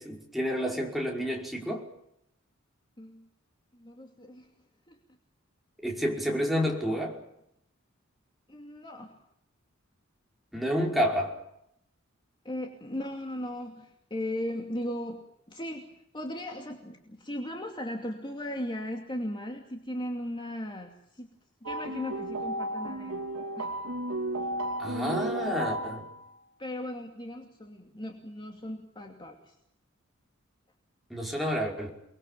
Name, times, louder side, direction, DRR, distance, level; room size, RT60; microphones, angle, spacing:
voice 1, 0.0-1.9 5.8-7.2 10.5-11.4 24.8-26.1 31.1-31.9, equal, ahead, -1 dB, 5.5 m, -29 dB
voice 2, 3.0-3.3 3.7-4.5 4.9-5.0 8.5-9.2 12.4-21.3 21.6-23.3 23.6-23.7 24.9-25.3 26.6-29.6, left 1 dB, 25° left, 2 dB, 2.6 m, -37 dB
sound 1, 21.7-26.3, right 1 dB, 90° right, 2.7 m, -33 dB
29.5 x 21.5 x 7.5 m, 0.77 s
head